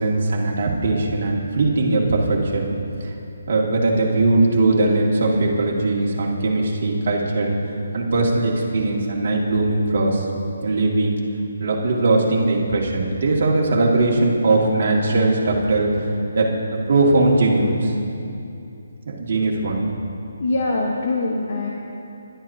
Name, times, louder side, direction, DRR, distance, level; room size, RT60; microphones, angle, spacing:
voice 1, 0.0-2.7 3.0-3.1 3.5-7.6 7.9-10.3 10.6-11.2 11.6-15.9 16.3-17.9 19.1-19.8, right 2 dB, 45° right, -2 dB, 1.9 m, -20 dB
voice 2, 20.4-21.7, left 2 dB, 45° left, -1 dB, 1.0 m, -23 dB
21.5 x 11.5 x 2.7 m, 2.7 s
hypercardioid pair, 170°, 0 cm